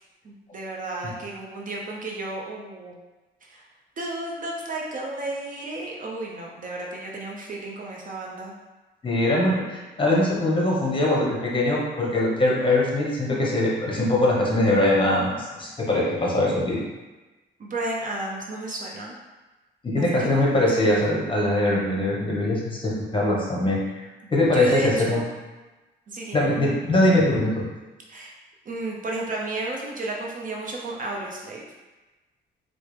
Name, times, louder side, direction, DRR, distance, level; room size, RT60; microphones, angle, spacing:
voice 1, 0.2-3.0 3.4-3.6 4.0-8.5 17.6-19.2 20.0-20.5 20.8-21.0 24.2-25.3 26.1-26.5 28.1-28.3 28.7-31.6, right 2 dB, 40° right, -2 dB, 0.6 m, -32 dB
voice 2, 9.0-16.8 19.8-23.8 24.3-25.2 26.3-27.6, left 1 dB, 25° left, -4 dB, 1.0 m, -22 dB
4.4 x 2.1 x 3.2 m, 1.2 s
cardioid pair, 90°, 20 cm